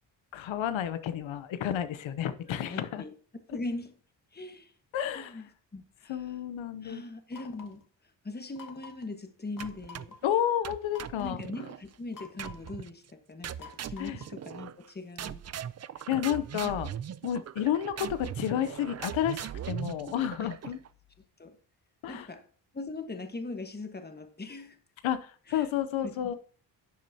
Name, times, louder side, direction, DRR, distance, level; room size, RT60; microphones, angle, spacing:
voice 1, 0.3-3.0 4.9-5.3 6.1-7.0 10.2-11.4 14.0-14.2 16.1-16.9 17.2-20.8 22.0-22.3 25.0-26.4, left 10 dB, 90° left, 11 dB, 0.8 m, -31 dB
voice 2, 2.6-3.1 3.5-3.9 4.3-4.7 5.1-5.5 5.7-6.4 6.8-7.8 8.2-10.1 11.2-15.4 20.4-20.5 21.4-21.6 22.0-22.5 22.7-24.8 25.5-25.7 26.0-26.4, left 2 dB, 20° left, 7 dB, 1.3 m, -40 dB
sound 1, 7.3-7.8 8.6-9.1 9.6-10.2 10.9-11.4 12.1-12.8 13.6-14.4, left 4 dB, 45° left, 1.3 m, -49 dB
sound 2, 9.6-10.2 10.6-11.8 12.4-12.9 13.4-14.9 15.2-20.9, right 9 dB, 40° right, 0.4 m, -40 dB
11.5 x 7.5 x 2.8 m, 0.42 s
cardioid pair, 85°, 45 cm